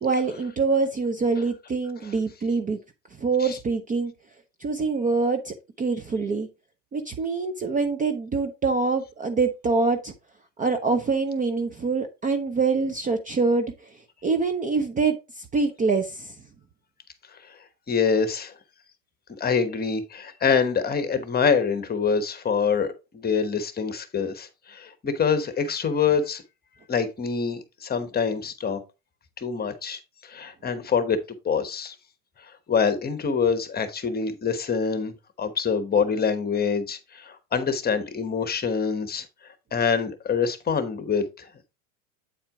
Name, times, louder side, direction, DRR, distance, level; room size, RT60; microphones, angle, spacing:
voice 1, 0.0-2.8 3.2-4.1 4.6-6.5 6.9-10.1 10.6-13.7 14.2-16.3, right 4 dB, 15° right, 0.6 m, -25 dB
voice 2, 17.9-18.5 19.4-26.4 26.9-28.8 29.4-31.2 31.4-31.9 32.7-39.2 39.7-41.5, left 6 dB, 20° left, 1.1 m, -25 dB
8.7 x 4.3 x 3.7 m
hypercardioid pair, 105°, 47 cm